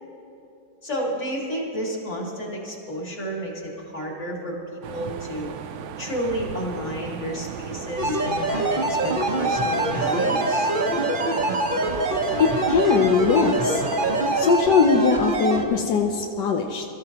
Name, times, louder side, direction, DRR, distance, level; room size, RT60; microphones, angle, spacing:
voice 1, 0.8-5.6 6.0-10.7, equal, 45° left, -2 dB, 2.7 m, -31 dB
sound 1, 4.8-14.6, right 8 dB, 70° right, 0.7 m, -36 dB
sound 2, 8.0-15.6, right 1 dB, 35° right, 1.1 m, -24 dB
Wind instrument woodwind instrument, 9.5-15.7, right 2 dB, 20° left, 1.7 m, -39 dB
voice 2, 12.4-13.8 14.3-16.8, left 5 dB, 85° left, 2 dB, 1.4 m, -21 dB
24.0 x 13.5 x 2.9 m, 3.0 s
omnidirectional pair, 1.8 m